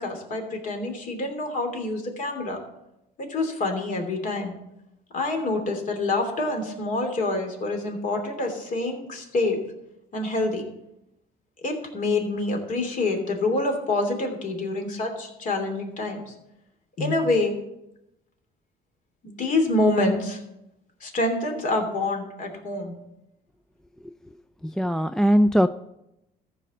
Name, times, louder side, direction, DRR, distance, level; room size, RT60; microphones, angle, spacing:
voice 1, 0.0-2.6 3.2-4.5 5.1-9.6 10.1-10.6 11.6-16.3 17.0-17.5 19.2-20.4 21.0-22.9, left 2 dB, 50° left, 3 dB, 2.9 m, -26 dB
voice 2, 24.6-25.7, equal, 5° left, 10 dB, 0.3 m, -20 dB
14.5 x 5.1 x 7.5 m, 0.87 s
cardioid pair, 110°, 17 cm